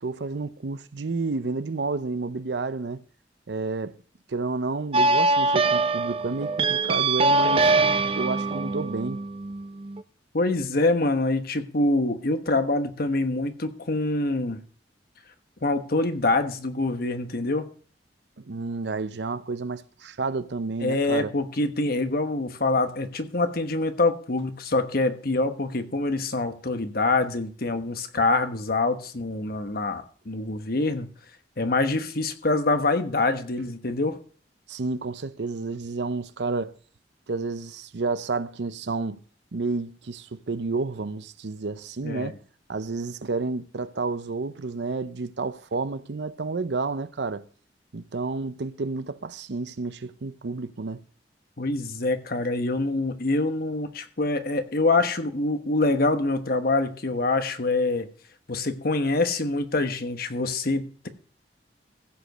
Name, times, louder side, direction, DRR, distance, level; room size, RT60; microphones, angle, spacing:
voice 1, 0.0-3.0 3.5-4.0 4.3-7.7 8.1-9.2 18.4-21.3 34.7-36.7 37.3-39.2 39.5-42.4 42.7-47.4 47.9-51.0, right 3 dB, 75° right, 0.6 m, -30 dB
sound 1, 4.9-10.0, right 3 dB, 30° right, 0.5 m, -23 dB
voice 2, 10.3-14.6 15.6-17.7 20.8-31.1 31.6-34.2 42.0-42.3 51.6-58.1 58.5-61.1, left 2 dB, 55° left, 1.1 m, -25 dB
15.5 x 5.2 x 6.6 m
head